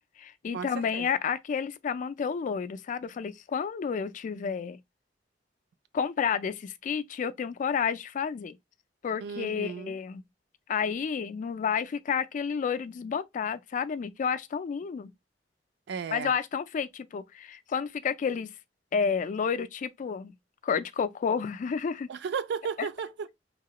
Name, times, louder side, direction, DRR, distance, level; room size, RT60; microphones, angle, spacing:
voice 1, 0.2-4.8 5.9-8.6 9.0-10.2 10.7-15.1 16.1-18.5 18.9-20.3 20.6-22.1 22.8-22.9, left 6 dB, 45° left, 0.3 m, -30 dB
voice 2, 9.2-10.0 15.9-16.3 22.1-23.4, right 6 dB, 70° right, 0.3 m, -34 dB
2.9 x 2.9 x 2.3 m
head